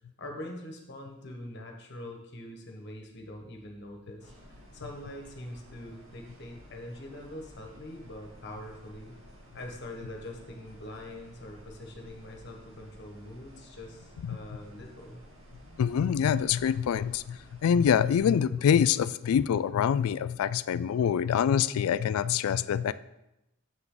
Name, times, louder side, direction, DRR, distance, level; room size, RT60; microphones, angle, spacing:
voice 1, 0.2-9.2 9.5-15.2, left 1 dB, 55° left, 2 dB, 1.4 m, -43 dB
sound 1, 4.2-18.2, equal, 80° right, 2.0 m, -53 dB
voice 2, 15.8-17.4 17.6-22.9, left 8 dB, 90° left, 16 dB, 0.3 m, -25 dB
7.5 x 5.8 x 3.9 m, 0.91 s
head